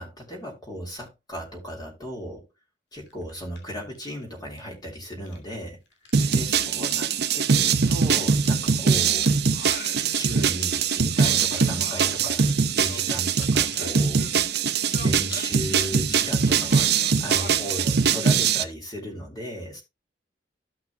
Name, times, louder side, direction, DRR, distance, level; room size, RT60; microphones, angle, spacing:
voice 1, 0.0-2.5 2.9-5.8 6.3-9.3 10.1-12.4 12.7-14.3 15.0-16.9 17.2-19.8, equal, 25° left, 3.1 m, -36 dB
sound 1, 2.9-4.8 5.1-5.6 5.9-17.4, left 6 dB, 85° left, 2.7 m, -47 dB
sound 2, 6.1-18.6, right 6 dB, 65° right, 0.8 m, -22 dB
Singing, 9.5-10.7 10.9-14.6 14.9-18.1, left 3 dB, 60° left, 1.3 m, -42 dB
15.0 x 5.8 x 2.3 m
head